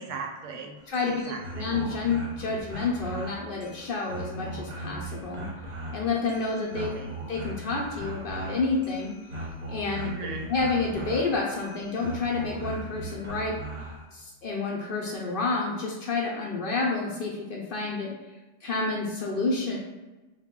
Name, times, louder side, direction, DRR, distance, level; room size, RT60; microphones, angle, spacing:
voice 1, 0.0-0.8 1.2-1.7 6.7-7.2 10.0-10.5, right 4 dB, 80° right, 3 dB, 0.9 m, -38 dB
sound 1, 0.8-14.0, right 2 dB, 40° right, 0.8 m, -39 dB
voice 2, 0.9-5.5 5.9-6.9 7.3-9.1 9.7-10.1 10.4-13.6 14.1-18.1 18.6-19.8, left 3 dB, 55° left, -2 dB, 0.7 m, -29 dB
3.4 x 2.2 x 3.6 m, 1.2 s
omnidirectional pair, 1.3 m